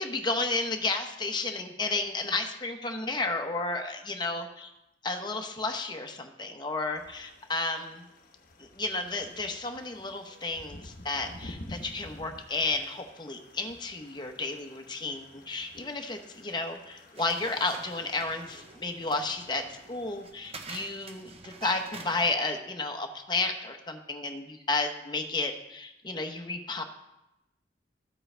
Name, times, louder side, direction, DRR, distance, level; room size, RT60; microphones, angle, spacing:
voice 1, 0.0-4.7 5.0-8.0 8.6-26.8, left 3 dB, 25° left, 4 dB, 0.9 m, -32 dB
sound 1, 6.9-20.2, left 1 dB, 50° left, 1.0 m, -50 dB
sound 2, 17.2-22.3, right 3 dB, 35° right, 0.9 m, -45 dB
13.5 x 7.6 x 3.3 m, 0.90 s
head